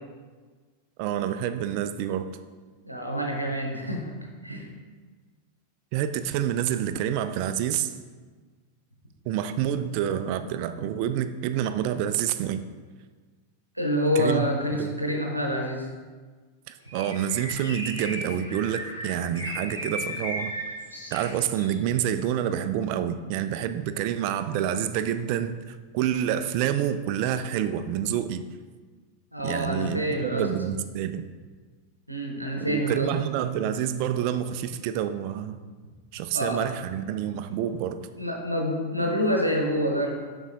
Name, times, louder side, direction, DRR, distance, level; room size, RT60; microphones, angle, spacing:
voice 1, 1.0-2.3 5.9-7.9 9.3-12.6 14.2-14.5 14.7-14.9 16.7-20.5 21.1-28.5 29.4-31.3 32.6-35.6 36.1-38.0, right 10 dB, 45° right, 10 dB, 0.3 m, -28 dB
voice 2, 2.8-4.1 4.4-4.7 13.7-15.9 29.3-30.5 32.1-33.1 36.3-36.6 37.5-37.6 38.2-40.1, equal, 90° right, 1 dB, 0.8 m, -27 dB
Bird, 16.9-21.8, equal, 85° left, 1.1 m, -36 dB
7.1 x 5.4 x 2.6 m, 1.4 s
figure-of-eight pair, 90°, 0 cm